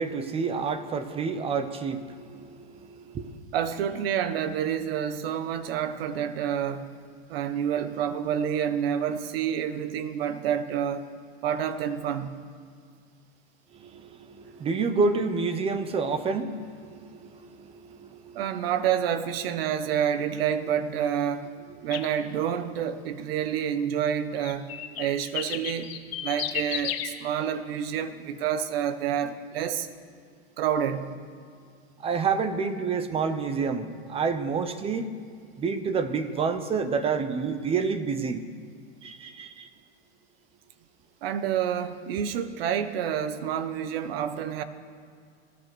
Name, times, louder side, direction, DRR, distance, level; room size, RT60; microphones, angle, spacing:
voice 1, 0.0-3.3 13.7-18.4 32.0-35.1 35.6-38.5 39.0-39.7, right 5 dB, 15° right, 11 dB, 0.9 m, -29 dB
voice 2, 3.5-6.9 7.3-11.1 11.4-12.4 18.3-21.5 21.8-24.7 25.0-25.9 26.2-29.9 30.6-31.2 41.2-44.6, right 9 dB, 60° right, 11 dB, 1.3 m, -28 dB
sound 1, 21.9-22.1 24.4-27.1, left 11 dB, 65° left, 1.6 m, -32 dB
16.5 x 13.0 x 6.3 m, 2.2 s
supercardioid pair, 145°, 32 cm